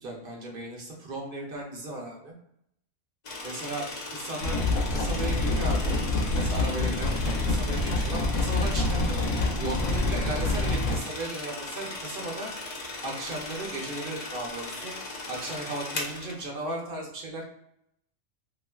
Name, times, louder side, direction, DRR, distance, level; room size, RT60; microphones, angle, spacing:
voice 1, 0.0-2.3 3.4-6.0 6.3-9.3 9.6-12.5 13.0-15.0 15.3-17.4, right 2 dB, 55° right, -1 dB, 0.7 m, -36 dB
sound 1, 3.2-16.4, left 2 dB, 60° left, 0.4 m, -38 dB
sound 2, 4.4-11.0, left 2 dB, 85° left, 0.9 m, -26 dB
3.1 x 2.4 x 2.2 m, 0.73 s
omnidirectional pair, 1.2 m